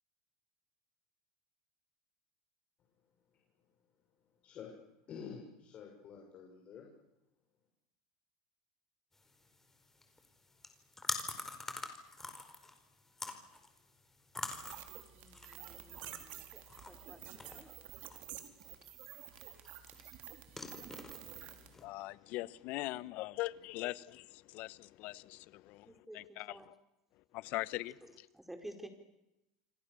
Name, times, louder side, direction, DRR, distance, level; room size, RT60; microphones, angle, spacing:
voice 1, 4.4-4.7 5.1-6.9, left 6 dB, 40° left, 6.6 m, -49 dB
sound 1, 9.1-21.8, left 2 dB, 10° left, 4.6 m, -47 dB
sound 2, 14.5-21.7, right 12 dB, 55° right, 3.8 m, -50 dB
voice 2, 15.1-16.6 16.9-17.7 25.8-26.6 28.3-28.9, right 1 dB, 5° right, 4.9 m, -52 dB
voice 3, 21.0-26.8 27.1-28.3, left 19 dB, 55° left, 1.1 m, -42 dB
28.5 x 25.0 x 7.1 m
supercardioid pair, 105°, 3 cm